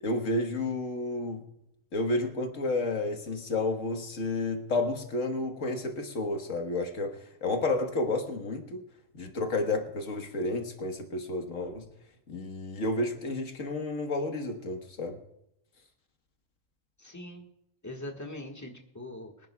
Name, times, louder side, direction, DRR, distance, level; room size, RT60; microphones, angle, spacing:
voice 1, 0.0-1.4 1.9-8.8 9.1-11.9 12.3-15.2, left 2 dB, 75° left, 4 dB, 1.7 m, -31 dB
voice 2, 17.0-17.5 17.8-19.5, left 1 dB, 15° left, 1 dB, 1.5 m, -42 dB
24.5 x 10.5 x 2.3 m, 0.81 s
omnidirectional pair, 1.4 m